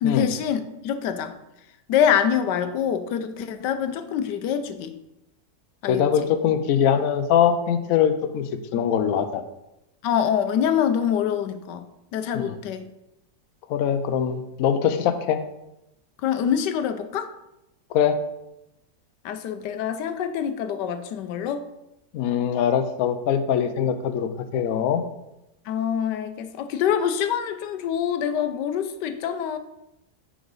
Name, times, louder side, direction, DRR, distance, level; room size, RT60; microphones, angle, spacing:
voice 1, 0.0-1.4 1.9-4.9 5.8-6.3 10.0-11.9 12.1-12.9 16.2-17.3 19.2-21.7 25.7-29.6, left 8 dB, 85° left, 10 dB, 1.3 m, -25 dB
voice 2, 5.9-9.4 12.3-12.5 13.7-15.4 17.9-18.2 22.1-25.0, left 8 dB, 65° left, 8 dB, 1.0 m, -22 dB
10.0 x 4.9 x 4.0 m, 0.89 s
omnidirectional pair, 1.8 m